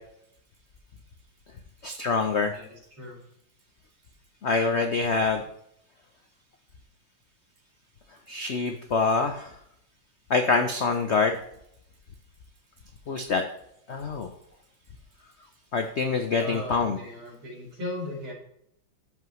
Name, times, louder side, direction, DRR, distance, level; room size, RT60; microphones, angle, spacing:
voice 1, 1.8-2.5 4.4-5.4 8.3-9.5 10.3-11.4 13.1-13.4 13.9-14.3 15.7-17.0, left 4 dB, 80° left, 6 dB, 0.6 m, -25 dB
voice 2, 2.5-3.2 16.4-18.3, left 1 dB, 75° right, -4 dB, 4.0 m, -37 dB
13.0 x 5.5 x 3.1 m, 0.74 s
omnidirectional pair, 2.2 m